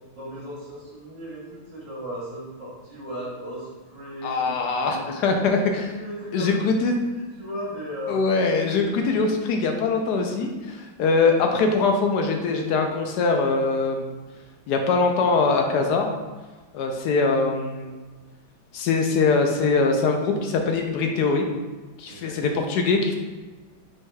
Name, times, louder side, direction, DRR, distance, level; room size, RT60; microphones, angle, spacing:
voice 1, 0.1-5.3 6.0-6.6 7.4-8.2 22.1-22.4, equal, 65° right, -5 dB, 1.6 m, -36 dB
voice 2, 4.2-6.0 6.3-7.0 8.1-14.0 14.7-16.1 16.7-18.0 18.7-21.5 22.0-23.1, left 4 dB, 75° left, 3 dB, 0.9 m, -22 dB
4.7 x 4.3 x 2.2 m, 1.3 s
omnidirectional pair, 2.1 m